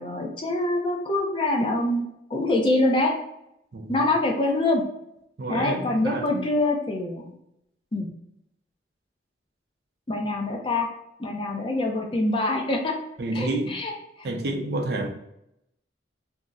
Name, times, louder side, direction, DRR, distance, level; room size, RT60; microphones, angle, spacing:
voice 1, 0.0-3.2 3.9-4.8 5.5-7.3 7.9-8.1 10.1-10.9 11.2-12.9 13.3-14.3, left 2 dB, 30° left, 0 dB, 0.5 m, -25 dB
voice 2, 5.4-6.3 13.2-13.7 14.2-15.1, right 2 dB, 60° right, 2 dB, 0.5 m, -29 dB
2.6 x 2.0 x 3.5 m, 0.80 s
head